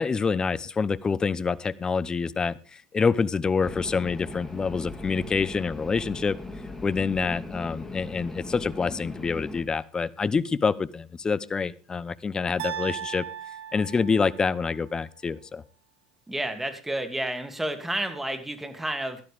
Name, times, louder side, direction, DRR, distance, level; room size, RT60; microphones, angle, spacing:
voice 1, 0.0-6.4 6.8-13.2 13.7-15.6, left 5 dB, 25° left, 20 dB, 0.8 m, -26 dB
sound 1, 3.6-9.6, left 2 dB, 10° left, 3.0 m, -39 dB
sound 2, 12.6-14.7, right 9 dB, 75° right, 1.7 m, -37 dB
voice 2, 16.3-19.2, right 1 dB, 10° right, 7 dB, 2.6 m, -30 dB
16.5 x 12.0 x 3.5 m, 0.35 s
hypercardioid pair, 75°, 3 cm